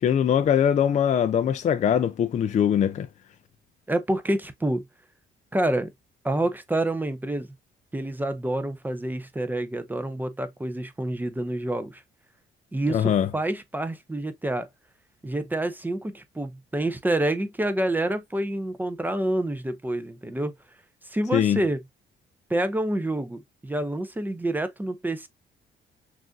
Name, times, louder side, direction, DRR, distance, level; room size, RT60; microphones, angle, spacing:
voice 1, 0.0-3.1 12.9-13.3 21.3-21.6, left 9 dB, 40° left, 0.4 m, -22 dB
voice 2, 3.9-4.8 5.5-5.9 6.2-7.5 7.9-12.0 12.7-14.7 15.2-20.5 21.1-21.8 22.5-25.3, right 1 dB, 10° right, 0.6 m, -28 dB
6.1 x 2.6 x 2.3 m
cardioid pair, 115°, 19 cm